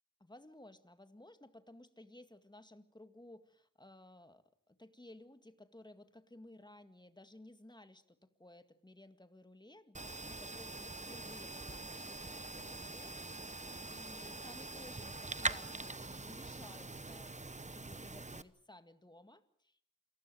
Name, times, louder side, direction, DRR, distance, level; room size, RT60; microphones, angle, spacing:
voice 1, 0.2-17.4 17.7-19.9, left 1 dB, 15° left, 10 dB, 2.0 m, -57 dB
sound 1, 9.9-18.4, right 2 dB, 20° right, 1.0 m, -43 dB
27.5 x 19.0 x 7.8 m, 0.63 s
wide cardioid pair, 85°, 32 cm